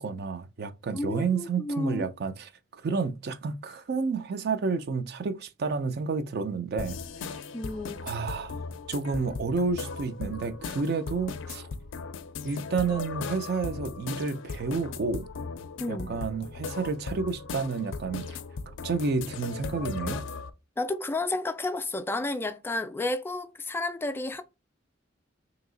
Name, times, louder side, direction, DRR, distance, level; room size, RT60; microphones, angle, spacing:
voice 1, 0.0-7.0 7.2-7.4 8.0-8.6 8.9-11.7 12.4-15.3 15.9-18.4 18.8-20.2, right 4 dB, 55° right, 0.4 m, -30 dB
voice 2, 0.9-2.0 7.5-8.0 15.8-16.2 20.8-24.4, left 2 dB, 10° left, 0.3 m, -31 dB
sound 1, 6.8-20.5, left 4 dB, 80° left, 0.4 m, -38 dB
2.9 x 2.7 x 3.8 m
head